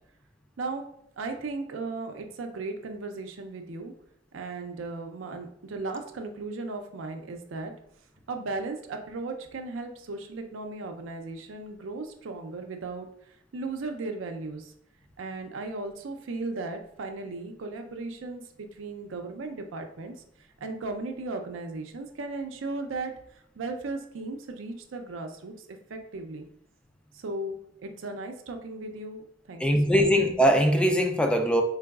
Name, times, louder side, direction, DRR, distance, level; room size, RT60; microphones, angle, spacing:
voice 1, 1.2-3.9 4.3-7.7 8.3-13.1 13.5-14.7 15.2-20.1 20.6-26.5 27.1-27.6 27.8-29.6 29.9-30.0, right 3 dB, 90° right, 0.5 m, -36 dB
voice 2, 29.6-31.6, equal, 5° left, 0.3 m, -21 dB
3.8 x 3.3 x 2.3 m
head